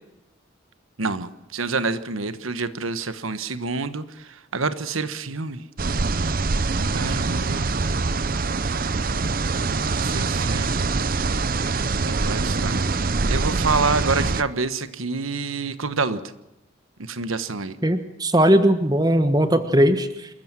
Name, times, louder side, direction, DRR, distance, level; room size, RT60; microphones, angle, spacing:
voice 1, 1.0-5.6 6.9-7.7 9.9-10.7 12.0-12.8 13.3-16.2 17.0-17.8, right 4 dB, 85° right, 12 dB, 1.3 m, -27 dB
sound 1, 5.8-14.4, right 3 dB, 45° right, 0.7 m, -24 dB
voice 2, 17.8-20.3, right 1 dB, 20° right, 10 dB, 1.4 m, -19 dB
27.5 x 14.5 x 7.6 m, 0.92 s
head